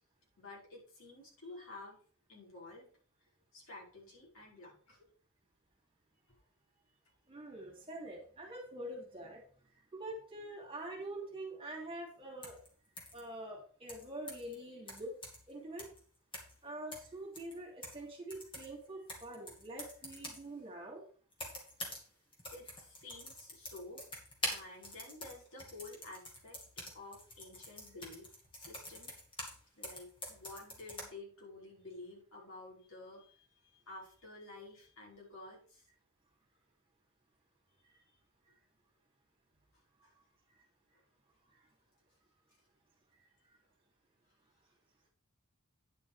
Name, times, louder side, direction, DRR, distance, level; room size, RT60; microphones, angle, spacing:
voice 1, 0.4-2.0 2.3-2.9 3.2-5.1 10.5-10.6 22.5-24.0 24.5-26.6 26.9-28.3 28.5-29.1 29.8-35.9 38.0-38.2 40.0-40.1 40.9-41.0, left 2 dB, 65° left, -4 dB, 5.2 m, -51 dB
voice 2, 7.3-9.4 9.9-12.6 13.1-15.1 15.5-15.9 16.6-21.0 41.4-41.5, right 1 dB, 25° right, 0 dB, 3.0 m, -45 dB
sound 1, 12.4-12.7 13.0-13.2 13.9-14.5 14.9-15.5 15.8-16.0 16.3-16.6 16.9-18.0 18.3-20.5 21.3-22.1 22.3-29.6 29.8-31.0, left 1 dB, 25° left, 2.8 m, -46 dB
9.9 x 6.1 x 5.1 m, 0.42 s
head